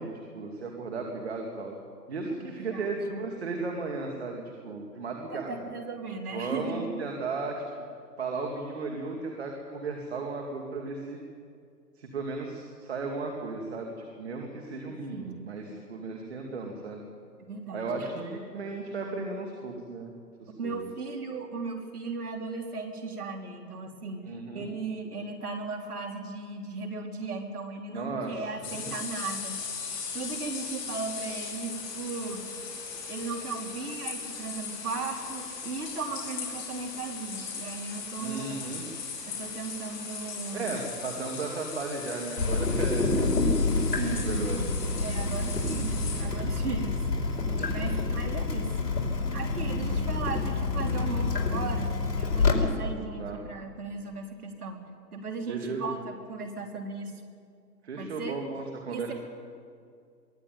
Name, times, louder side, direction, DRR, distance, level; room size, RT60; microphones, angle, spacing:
voice 1, 0.0-1.8 2.1-5.5 6.3-7.7 8.2-11.2 12.0-17.0 17.7-20.1 20.4-20.8 24.3-24.7 27.9-28.5 38.2-38.9 40.5-43.3 43.7-44.6 47.6-47.8 51.0-51.3 53.2-53.4 55.5-55.9 57.8-59.1, right 3 dB, 40° right, 2 dB, 2.4 m, -35 dB
voice 2, 2.6-2.9 5.3-6.9 14.9-15.5 17.5-18.1 20.6-29.7 30.1-32.5 33.1-38.7 39.4-40.9 44.0-44.6 45.0-47.0 47.7-48.7 49.3-54.8 55.1-57.2 58.0-58.4 58.9-59.1, right 4 dB, 60° right, 2 dB, 3.5 m, -37 dB
sound 1, 28.6-46.2, left 5 dB, 20° left, 4.5 m, -38 dB
Water tap faucet / Drip, 42.4-52.5, left 3 dB, 75° left, 5.1 m, -28 dB
23.0 x 15.0 x 9.3 m, 2.2 s
hypercardioid pair, 170°, 49 cm